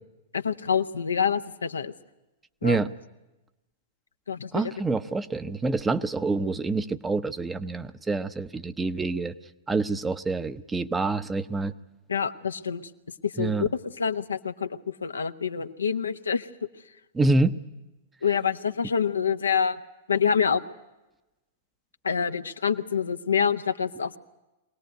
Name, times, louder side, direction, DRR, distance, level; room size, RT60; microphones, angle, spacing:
voice 1, 0.3-1.9 2.6-2.8 4.3-4.7 12.1-12.8 13.2-16.5 18.2-19.8 20.1-20.6 22.0-24.2, left 7 dB, 75° left, 9 dB, 0.9 m, -26 dB
voice 2, 4.5-9.3 9.7-11.7 13.4-13.7 17.1-17.6, right 3 dB, 10° right, 12 dB, 0.8 m, -26 dB
23.5 x 18.5 x 9.3 m, 1.0 s
figure-of-eight pair, 100°, 0 cm